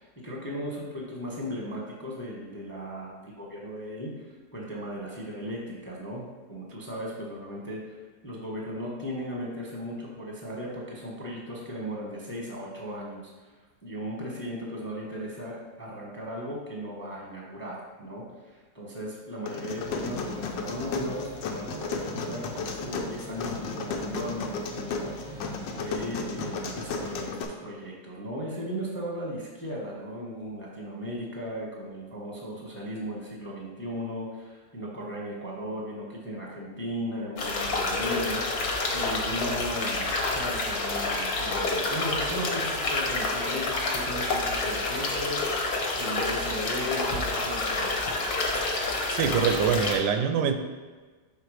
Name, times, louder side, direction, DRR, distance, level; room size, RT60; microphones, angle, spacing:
voice 1, 0.0-8.0 8.2-13.5 13.8-38.4 38.9-45.6 45.9-48.0, equal, 10° left, -3 dB, 0.7 m, -37 dB
sound 1, 19.5-27.4, left 4 dB, 90° left, 1.3 m, -34 dB
sound 2, 19.8-27.3, right 1 dB, 55° right, 0.5 m, -44 dB
sound 3, 37.4-50.0, left 3 dB, 60° left, 1.3 m, -28 dB
voice 2, 48.6-50.5, right 7 dB, 85° right, 7 dB, 1.3 m, -25 dB
5.9 x 3.7 x 4.8 m, 1.4 s
omnidirectional pair, 2.0 m